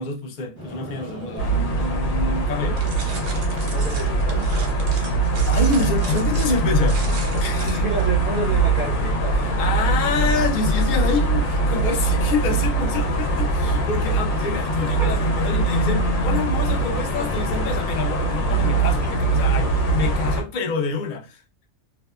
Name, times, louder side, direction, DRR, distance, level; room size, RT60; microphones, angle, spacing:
voice 1, 0.0-2.8 4.9-5.1 5.5-7.8 9.3-21.4, left 4 dB, 65° left, 0.4 m, -27 dB
sound 1, 0.6-20.3, right 1 dB, 20° left, 0.6 m, -37 dB
sound 2, 1.4-20.4, right 2 dB, 85° left, 1.0 m, -22 dB
sound 3, 2.8-8.1, right 4 dB, 85° right, 1.1 m, -37 dB
voice 2, 3.7-4.5 7.6-9.8 15.0-15.1 19.0-19.1, right 4 dB, 55° right, 0.6 m, -30 dB
2.7 x 2.1 x 2.2 m
omnidirectional pair, 1.4 m